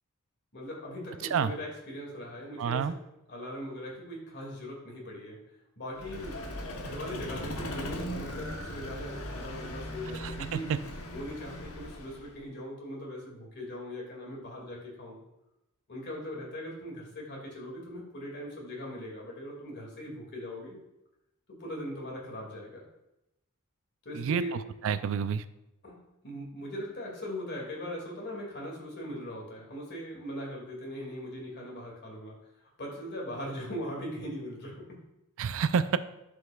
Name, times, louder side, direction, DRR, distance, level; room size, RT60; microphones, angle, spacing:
voice 1, 0.5-2.8 3.3-5.4 5.8-10.7 11.1-15.2 15.9-20.8 21.5-22.8 24.0-24.5 25.8-32.4 32.8-35.0, equal, 50° left, -2 dB, 2.2 m, -40 dB
voice 2, 2.6-2.9 10.1-10.8 24.1-25.4 35.4-36.0, right 6 dB, 65° right, 13 dB, 0.4 m, -29 dB
Vehicle, 5.9-12.4, left 1 dB, 90° left, 1.0 m, -39 dB
11.0 x 5.2 x 2.3 m, 0.89 s
head